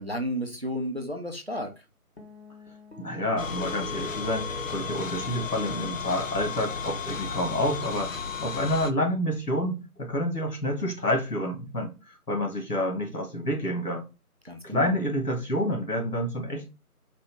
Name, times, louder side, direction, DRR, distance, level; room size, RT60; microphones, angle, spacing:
voice 1, 0.0-1.7 14.4-14.9, equal, 45° right, 0.6 m, -32 dB
sound 1, 2.2-8.7, equal, 45° left, 0.9 m, -46 dB
voice 2, 3.0-8.1 8.4-14.1 14.6-16.7, left 1 dB, 80° left, 1.9 m, -28 dB
sound 2, 3.4-8.9, left 5 dB, 60° left, 0.5 m, -34 dB
4.1 x 2.5 x 3.3 m
figure-of-eight pair, 170°, 46 cm